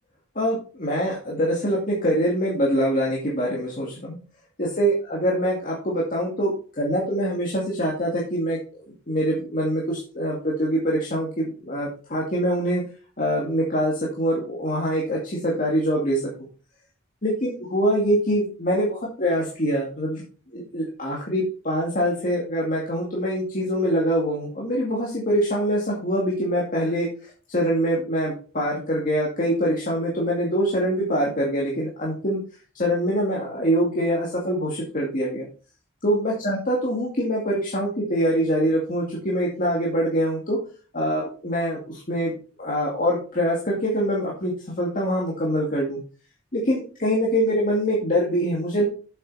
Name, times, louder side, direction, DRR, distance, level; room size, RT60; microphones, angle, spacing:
voice 1, 0.4-4.2 4.6-8.6 9.1-12.8 13.2-16.2 17.2-20.2 20.5-32.4 32.7-35.5 36.0-40.6 40.9-42.3 42.6-46.0 46.5-48.8, equal, 45° left, -3 dB, 2.2 m, -24 dB
8.0 x 7.9 x 4.1 m, 0.38 s
head